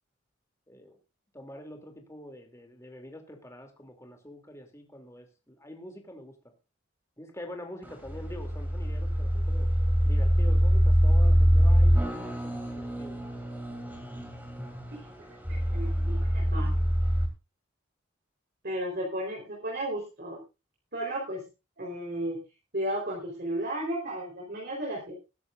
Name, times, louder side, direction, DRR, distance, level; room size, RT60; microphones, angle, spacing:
voice 1, 0.7-1.0 1.3-6.4 7.2-9.7 10.0-13.2, left 1 dB, 15° left, 3 dB, 2.8 m, -45 dB
sound 1, 7.8-17.3, equal, 10° right, 3.1 m, -24 dB
voice 2, 14.9-16.7 18.6-20.4 20.9-21.5 21.8-22.4 22.7-25.1, right 1 dB, 50° right, -2 dB, 4.1 m, -34 dB
21.5 x 11.0 x 2.6 m, 0.29 s
head